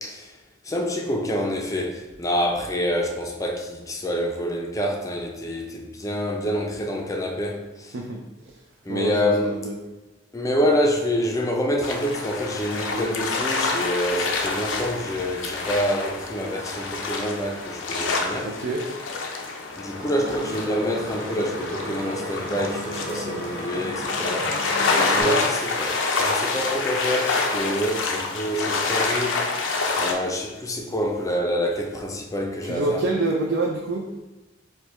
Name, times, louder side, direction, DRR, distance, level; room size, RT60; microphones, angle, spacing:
voice 1, 0.0-0.3 0.7-7.9 8.9-9.7 10.3-18.6 19.8-24.6 25.1-29.4 30.0-33.1, equal, 20° left, 0.5 m, -27 dB
voice 2, 9.4-9.8 18.4-18.8 25.1-25.4 32.6-34.1, right 2 dB, 65° right, 0.5 m, -26 dB
sound 1, 11.8-30.1, left 3 dB, 90° left, 0.6 m, -27 dB
sound 2, 19.8-25.2, right 1 dB, 30° right, 1.3 m, -34 dB
4.8 x 2.3 x 4.2 m
head